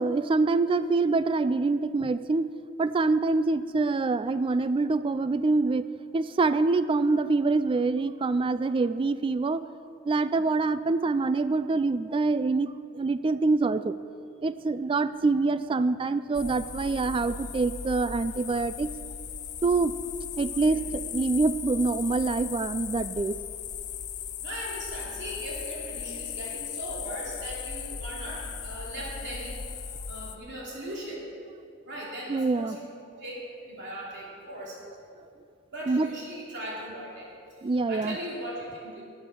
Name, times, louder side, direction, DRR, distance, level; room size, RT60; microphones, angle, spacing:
voice 1, 0.0-2.5 2.8-5.8 6.1-9.6 10.1-13.9 14.4-18.9 19.6-19.9 20.4-23.4 32.3-32.8 35.9-36.1 37.6-38.2, right 3 dB, 25° right, 13 dB, 0.3 m, -25 dB
sound 1, 16.3-30.4, left 7 dB, 35° left, 0.6 m, -37 dB
voice 2, 24.4-31.3 31.8-32.9 33.2-33.3 33.7-34.8 35.7-37.3 37.9-39.0, right 1 dB, 60° right, -5 dB, 2.9 m, -39 dB
13.0 x 8.1 x 6.1 m, 2.4 s
head